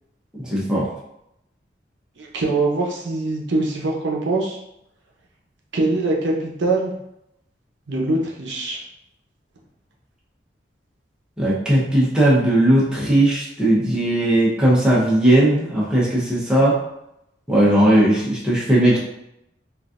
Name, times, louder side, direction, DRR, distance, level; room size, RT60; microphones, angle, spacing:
voice 1, 0.4-0.9 11.4-16.8 17.5-19.0, right 1 dB, 5° right, -7 dB, 0.8 m, -17 dB
voice 2, 2.2-4.6 5.7-6.9 7.9-8.8, right 2 dB, 80° right, -1 dB, 0.7 m, -23 dB
3.9 x 2.5 x 2.4 m, 0.81 s
head